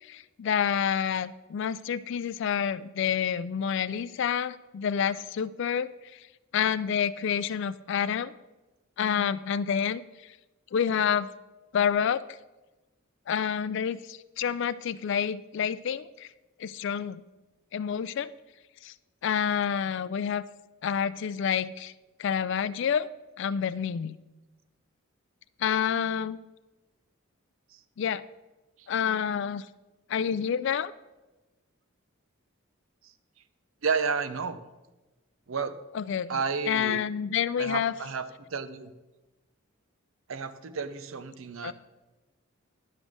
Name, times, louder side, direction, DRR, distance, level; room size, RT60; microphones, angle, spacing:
voice 1, 0.1-6.2 6.5-8.3 9.0-10.0 10.7-11.3 11.7-12.4 13.3-16.3 16.6-17.2 17.7-18.3 18.8-18.9 19.2-20.4 20.8-21.9 22.2-23.1 23.4-24.2 25.6-26.4 28.0-28.2 28.9-29.6 30.1-30.9 35.9-36.4 36.7-37.9 41.6-41.7, left 8 dB, 60° left, 17 dB, 0.3 m, -28 dB
voice 2, 33.8-34.6 35.5-35.8 36.3-37.0 37.6-38.9 40.3-41.7, right 5 dB, 75° right, 11 dB, 0.6 m, -31 dB
10.5 x 5.3 x 6.2 m, 1.1 s
head